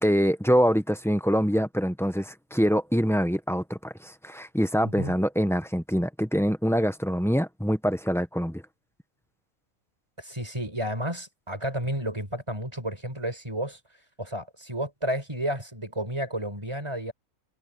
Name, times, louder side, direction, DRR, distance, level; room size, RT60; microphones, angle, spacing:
voice 1, 0.0-8.6, equal, ahead, 0.9 m, -25 dB
voice 2, 4.8-5.2 10.2-13.8 14.2-17.1, equal, 20° right, 5.2 m, -31 dB
omnidirectional pair, 1.5 m